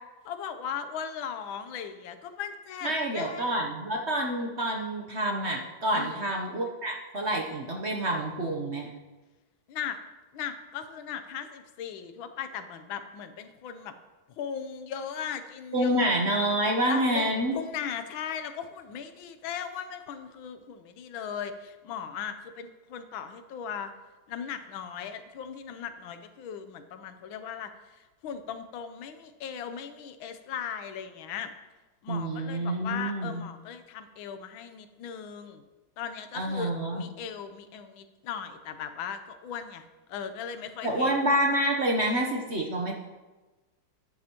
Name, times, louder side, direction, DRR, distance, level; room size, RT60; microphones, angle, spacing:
voice 1, 0.2-3.6 5.9-6.2 9.7-10.0 10.3-13.9 14.4-16.1 16.9-23.9 24.3-31.5 32.0-35.6 36.0-41.1, left 7 dB, 90° left, 10 dB, 1.6 m, -38 dB
voice 2, 2.8-8.9 15.7-17.6 32.1-33.4 36.3-37.1 40.8-42.9, right 1 dB, 45° right, 1 dB, 0.9 m, -28 dB
12.5 x 9.7 x 2.9 m, 1.2 s
omnidirectional pair, 2.1 m